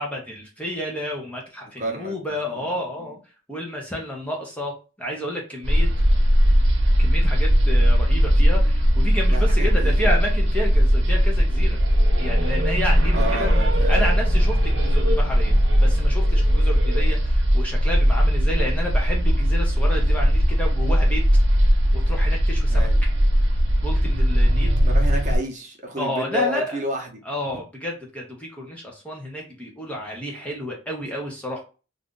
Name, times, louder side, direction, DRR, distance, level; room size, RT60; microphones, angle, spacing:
voice 1, 0.0-3.2 3.5-5.9 7.0-11.8 12.2-13.5 13.9-21.2 21.6-22.9 23.8-24.8 26.0-26.8 27.2-31.6, equal, 5° left, 0.6 m, -30 dB
voice 2, 1.8-2.1 2.5-2.7 9.3-10.1 13.1-14.2 22.7-23.0 24.8-27.2, equal, 40° right, 0.8 m, -30 dB
sound 1, 5.6-25.4, equal, 65° right, 0.9 m, -18 dB
2.5 x 2.4 x 3.6 m
head